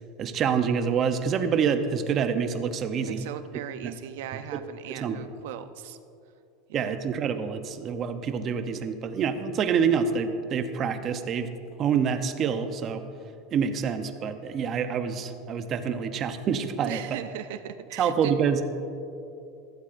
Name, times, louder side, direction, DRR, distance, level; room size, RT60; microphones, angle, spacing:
voice 1, 0.2-3.3 3.8-3.9 4.9-5.2 6.7-11.5 11.8-13.0 13.5-17.0 18.0-18.6, right 6 dB, 30° right, 8 dB, 0.6 m, -27 dB
voice 2, 3.0-6.0 6.7-7.0 16.8-18.3, right 11 dB, 75° right, 11 dB, 0.4 m, -38 dB
15.5 x 12.5 x 2.5 m, 2.6 s
supercardioid pair, 155°, 0 cm